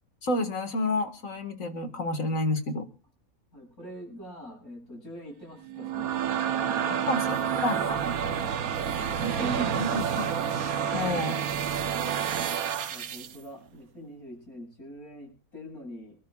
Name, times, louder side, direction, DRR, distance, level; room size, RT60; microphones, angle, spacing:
voice 1, 0.2-2.9 6.9-8.0 9.2-10.3 10.9-11.5, left 1 dB, 65° left, 7 dB, 2.2 m, -30 dB
voice 2, 3.5-6.1 12.9-16.2, equal, 90° left, 0 dB, 8.8 m, -44 dB
sound 1, 5.6-13.4, right 8 dB, 80° right, 1.4 m, -29 dB
28.0 x 12.5 x 2.4 m, 0.32 s
omnidirectional pair, 1.5 m